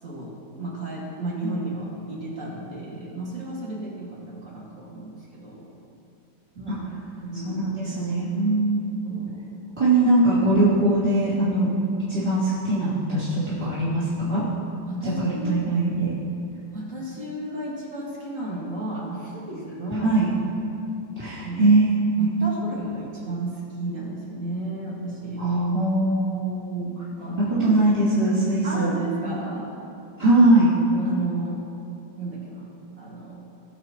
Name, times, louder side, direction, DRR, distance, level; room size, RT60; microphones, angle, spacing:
voice 1, 0.0-5.7 6.6-6.8 7.2-7.8 9.0-9.4 14.9-15.7 16.7-20.2 21.4-21.7 22.2-25.5 27.2-27.9 28.6-29.7 30.9-31.6 32.2-32.7 33.0-33.4, right 2 dB, 40° right, -6 dB, 2.4 m, -33 dB
voice 2, 7.4-9.0 9.8-11.7 12.1-14.4 15.0-16.1 20.0-20.3 21.2-22.5 25.4-26.9 27.5-28.9 30.2-30.7, right 2 dB, 15° right, -13 dB, 2.6 m, -21 dB
18.5 x 7.1 x 3.1 m, 2.7 s
omnidirectional pair, 2.3 m